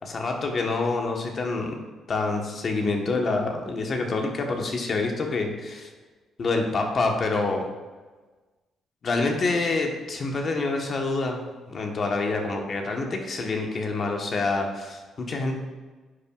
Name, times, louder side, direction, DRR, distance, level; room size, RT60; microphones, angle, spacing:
voice 1, 0.0-1.8 2.1-5.9 6.4-7.7 9.0-15.6, left 3 dB, 45° left, 2 dB, 1.2 m, -27 dB
9.6 x 5.6 x 2.4 m, 1.3 s
cardioid pair, 90°, 0 cm